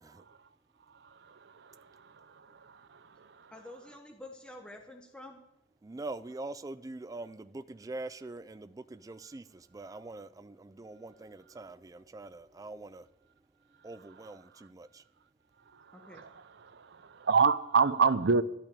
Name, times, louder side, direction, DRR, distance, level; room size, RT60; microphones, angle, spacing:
voice 1, 1.2-3.5 15.7-16.3 16.6-18.4, right 5 dB, 65° right, 0.6 m, -29 dB
voice 2, 3.5-5.4 15.9-16.2, left 1 dB, 5° left, 0.9 m, -48 dB
voice 3, 5.8-13.1 13.8-15.0, right 2 dB, 20° right, 0.3 m, -43 dB
12.5 x 6.0 x 8.4 m
head